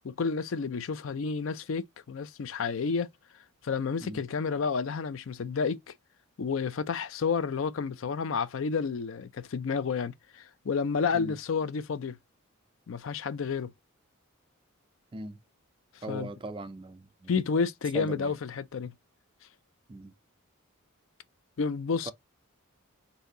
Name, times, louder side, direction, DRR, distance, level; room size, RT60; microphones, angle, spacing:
voice 1, 0.0-3.1 3.6-5.9 6.4-12.2 12.9-13.7 16.1-16.3 17.3-18.9 21.6-22.1, left 5 dB, 60° left, 0.4 m, -30 dB
voice 2, 16.0-17.3 17.9-18.4 19.9-20.1 22.1-22.2, right 2 dB, 25° right, 0.3 m, -39 dB
4.1 x 2.7 x 3.8 m
head